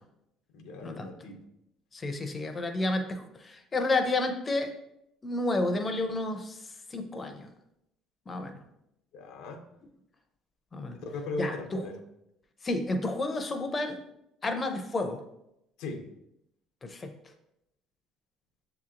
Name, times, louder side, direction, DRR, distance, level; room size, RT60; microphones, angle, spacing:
voice 1, 0.5-1.4 9.1-9.7 10.9-12.0 15.8-16.1, left 2 dB, 75° left, 4 dB, 0.5 m, -38 dB
voice 2, 1.9-4.7 5.2-6.6 6.9-7.5 8.3-8.6 10.7-11.0 11.4-11.9 12.6-14.0 14.4-15.2 16.8-17.1, left 2 dB, 20° left, 6 dB, 0.4 m, -30 dB
6.8 x 2.8 x 2.4 m, 0.82 s
cardioid pair, 165°, 0 cm